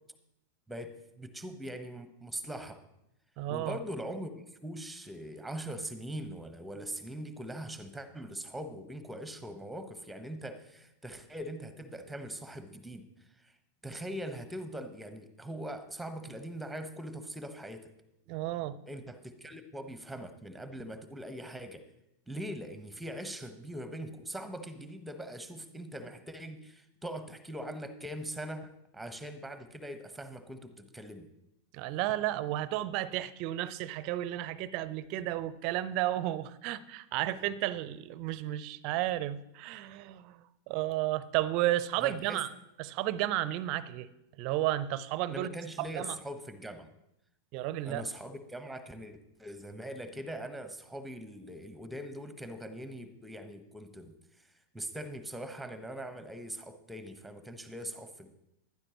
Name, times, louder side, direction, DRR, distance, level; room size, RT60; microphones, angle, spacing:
voice 1, 0.7-2.8 3.5-13.1 13.4-13.5 13.8-17.9 18.9-21.8 22.3-31.3 42.0-42.4 45.3-46.9 47.8-54.5 54.7-58.3, right 1 dB, 5° right, 1.1 m, -42 dB
voice 2, 3.4-3.8 18.3-18.8 31.7-42.5 42.8-44.1 44.4-46.2 47.5-48.0, right 14 dB, 45° right, 0.6 m, -33 dB
15.0 x 12.0 x 3.0 m
figure-of-eight pair, 90°, 0 cm